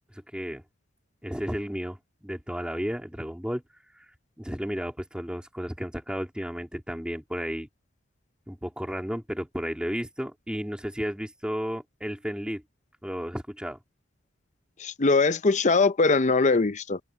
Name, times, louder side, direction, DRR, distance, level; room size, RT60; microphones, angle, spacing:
voice 1, 0.1-0.6 1.2-2.0 2.2-3.6 3.9-4.1 4.4-7.7 8.5-12.6 13.0-13.8, equal, 5° right, 2.9 m, -33 dB
voice 2, 14.8-17.0, left 3 dB, 35° left, 0.6 m, -21 dB
head